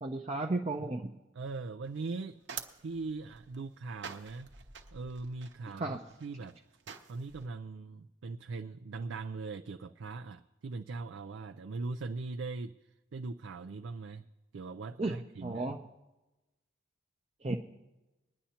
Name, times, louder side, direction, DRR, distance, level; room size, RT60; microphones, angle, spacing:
voice 1, 0.0-1.2 5.8-6.0 15.0-15.2 15.4-15.8 17.4-17.6, right 2 dB, 30° right, 0 dB, 0.5 m, -33 dB
voice 2, 1.4-2.4 2.8-4.5 4.9-6.6 7.1-12.8 13.1-14.3 14.5-15.7, right 3 dB, 85° right, 6 dB, 0.4 m, -40 dB
sound 1, 1.8-7.5, right 7 dB, 65° right, 0.9 m, -48 dB
22.0 x 10.0 x 2.9 m, 1.0 s
head